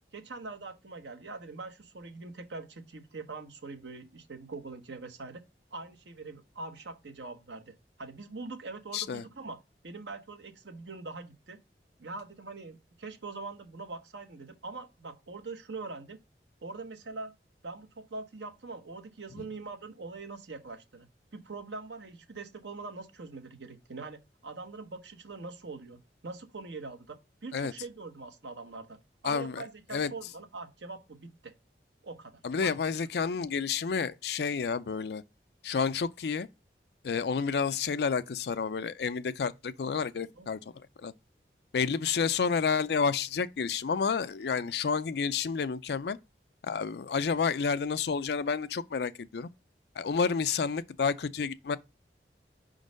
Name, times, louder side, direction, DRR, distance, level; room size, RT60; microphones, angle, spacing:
voice 1, 0.1-5.4 5.7-9.6 9.8-11.6 12.0-16.2 16.6-17.3 17.6-21.1 21.3-29.0 29.2-31.5 32.0-32.9 40.3-40.5, right 3 dB, 85° right, 0.9 m, -43 dB
voice 2, 8.9-9.2 27.5-27.7 29.2-29.6 29.9-30.1 32.4-35.2 35.6-36.5 37.0-40.6 41.0-41.1 41.7-46.2 46.6-49.5 50.0-51.8, left 5 dB, 70° left, 0.4 m, -30 dB
5.2 x 3.8 x 5.1 m
head